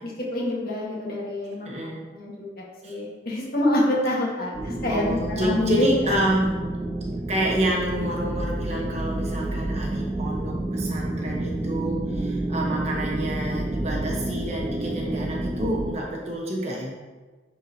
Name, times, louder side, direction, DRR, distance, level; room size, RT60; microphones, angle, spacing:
voice 1, 0.0-1.7 2.1-5.9, left 1 dB, 50° left, -5 dB, 1.9 m, -26 dB
voice 2, 1.6-2.0 2.8-2.9 4.9-6.6 7.3-16.9, right 1 dB, 35° right, -3 dB, 1.3 m, -28 dB
sound 1, 4.5-15.9, right 1 dB, 20° right, 0.4 m, -29 dB
10.5 x 4.5 x 3.1 m, 1.3 s
head